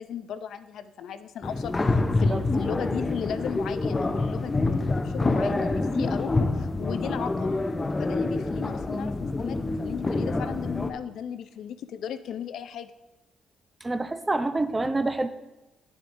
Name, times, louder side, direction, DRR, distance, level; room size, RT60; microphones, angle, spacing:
voice 1, 0.0-7.6 8.0-12.9, left 8 dB, 70° left, 11 dB, 0.4 m, -36 dB
sound 1, 1.4-10.9, left 2 dB, 25° left, 0.5 m, -26 dB
voice 2, 13.8-15.3, right 2 dB, 20° right, 10 dB, 0.5 m, -27 dB
10.0 x 7.1 x 2.6 m, 1.0 s
cardioid pair, 90°, 0 cm